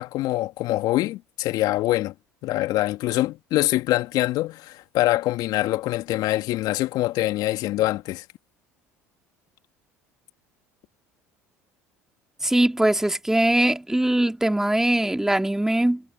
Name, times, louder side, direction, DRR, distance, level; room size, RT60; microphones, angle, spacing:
voice 1, 0.0-2.1 2.4-8.2, left 16 dB, 60° left, 2.4 m, -24 dB
voice 2, 12.4-16.0, right 1 dB, 5° right, 2.3 m, -21 dB
hypercardioid pair, 70°, 8 cm